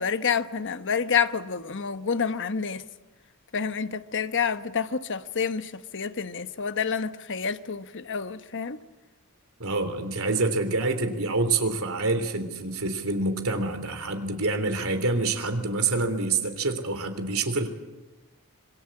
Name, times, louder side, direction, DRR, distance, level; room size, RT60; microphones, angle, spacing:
voice 1, 0.0-2.8 3.5-8.8, left 6 dB, 55° left, 1.1 m, -28 dB
voice 2, 9.6-17.7, right 3 dB, 65° right, 3.4 m, -27 dB
26.0 x 22.5 x 8.6 m
head